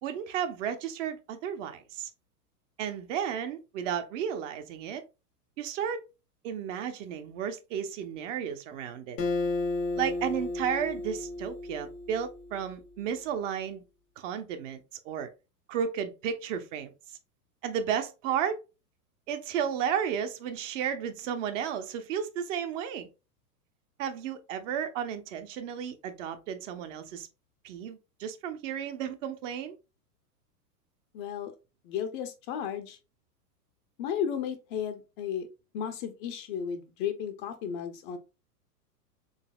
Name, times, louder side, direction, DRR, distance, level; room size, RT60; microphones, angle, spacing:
voice 1, 0.0-2.1 2.8-5.0 5.6-6.0 6.4-9.2 9.9-13.8 14.2-15.3 15.7-16.9 17.6-18.6 19.3-23.1 24.0-27.3 27.6-29.8, right 8 dB, 50° right, 0.7 m, -33 dB
Acoustic guitar, 9.2-12.7, left 2 dB, 80° left, 1.2 m, -33 dB
voice 2, 31.1-31.5 31.8-33.0 34.0-35.5 35.7-38.2, left 8 dB, 35° left, 0.5 m, -34 dB
4.0 x 3.3 x 2.3 m
hypercardioid pair, 100°, 48 cm